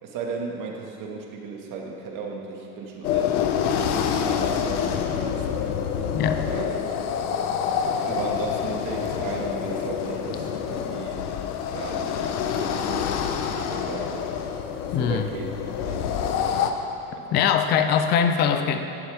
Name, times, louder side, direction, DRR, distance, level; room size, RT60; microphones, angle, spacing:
voice 1, 0.0-5.4 6.4-6.7 8.0-11.3 11.7-14.3 15.0-15.5 15.9-16.7 17.1-17.3, right 4 dB, 40° right, -1 dB, 2.1 m, -36 dB
sound 1, 3.0-16.7, left 7 dB, 65° left, 1.1 m, -27 dB
voice 2, 14.9-15.3 17.3-18.8, left 8 dB, 20° left, 7 dB, 0.4 m, -21 dB
16.5 x 11.5 x 3.6 m, 2.8 s
supercardioid pair, 145°, 48 cm